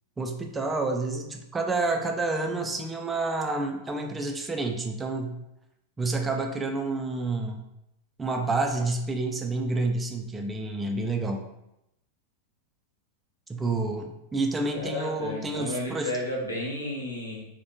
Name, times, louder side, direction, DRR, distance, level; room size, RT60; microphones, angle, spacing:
voice 1, 0.2-5.4 6.0-7.6 8.2-11.4 13.5-16.1, right 3 dB, 15° right, 4 dB, 0.3 m, -29 dB
voice 2, 14.7-17.5, left 1 dB, 80° left, -4 dB, 0.7 m, -32 dB
2.4 x 2.1 x 2.7 m, 0.86 s
figure-of-eight pair, 90°, 0 cm